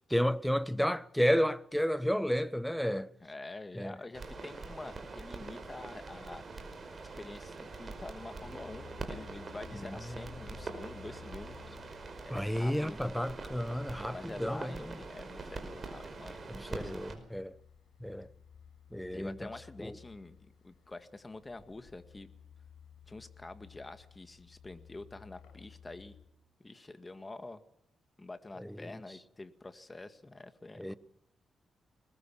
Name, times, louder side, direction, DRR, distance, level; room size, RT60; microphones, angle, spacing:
voice 1, 0.0-3.1 3.8-4.0 9.7-10.0 12.3-15.0 16.5-17.6 18.0-18.3 18.9-19.5 19.8-20.0 28.6-28.8 30.8-30.9, equal, ahead, 0.9 m, -32 dB
voice 2, 3.2-6.4 7.0-11.6 12.2-13.0 14.1-17.0 19.1-22.3 23.1-26.1 26.6-27.6 28.2-31.0, left 2 dB, 20° left, 1.9 m, -47 dB
sound 1, 4.1-17.1, right 3 dB, 35° right, 5.0 m, -44 dB
sound 2, 8.2-26.3, left 8 dB, 90° left, 5.9 m, -56 dB
21.5 x 20.5 x 7.2 m
cardioid pair, 110°, 0 cm